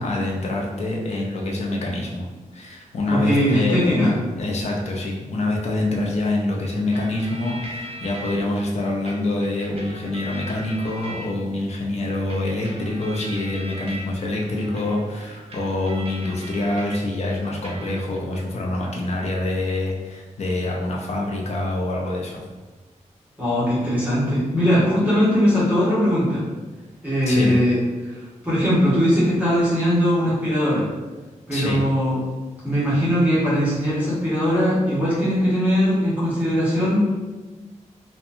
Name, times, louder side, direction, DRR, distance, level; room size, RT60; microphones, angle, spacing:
voice 1, 0.0-22.4 27.3-27.6 31.5-31.8, left 2 dB, 60° left, -1 dB, 0.5 m, -26 dB
voice 2, 3.1-4.1 23.4-26.4 27.0-27.7 28.1-30.9 31.5-32.2 32.6-37.1, equal, 10° right, -11 dB, 0.9 m, -20 dB
sound 1, 6.9-8.4 9.1-11.6 12.3-17.0 17.3-18.2, right 1 dB, 50° right, 0.5 m, -39 dB
2.7 x 2.2 x 2.5 m, 1.2 s
wide cardioid pair, 140°, 13 cm